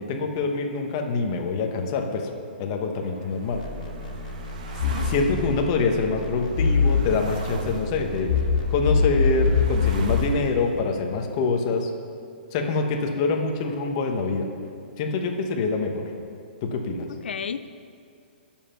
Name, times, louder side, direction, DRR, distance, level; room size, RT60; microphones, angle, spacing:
voice 1, 0.0-2.3 2.6-3.6 5.0-8.3 8.7-11.9 12.5-14.5 15.0-16.0 16.6-17.1, left 4 dB, 25° left, 3 dB, 1.0 m, -25 dB
sound 1, 3.0-10.9, right 3 dB, 40° right, 1.1 m, -42 dB
sound 2, 3.5-10.4, left 5 dB, 45° left, 2.0 m, -25 dB
voice 2, 4.9-5.5 17.2-17.7, left 6 dB, 80° left, 12 dB, 0.5 m, -34 dB
20.0 x 7.3 x 5.8 m, 2.4 s
hypercardioid pair, 180°, 6 cm